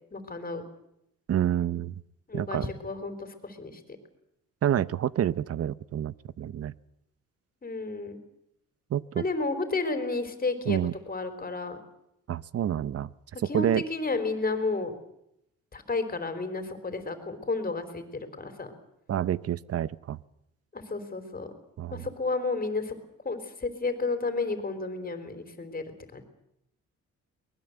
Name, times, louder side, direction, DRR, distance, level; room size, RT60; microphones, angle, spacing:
voice 1, 0.1-0.6 2.3-3.8 7.6-8.2 9.2-10.8 11.1-11.8 13.4-14.9 15.7-18.0 18.4-18.7 20.7-21.5 21.9-22.9 23.2-25.8 26.1-26.2, left 3 dB, 30° left, 8 dB, 4.0 m, -31 dB
voice 2, 1.3-1.9 2.3-2.7 4.6-6.7 8.9-9.2 10.7-10.9 12.3-13.1 13.5-13.8 19.1-20.2 21.8-22.0, right 10 dB, 50° right, 19 dB, 0.8 m, -28 dB
23.0 x 20.0 x 8.0 m, 0.81 s
cardioid pair, 90°, 30 cm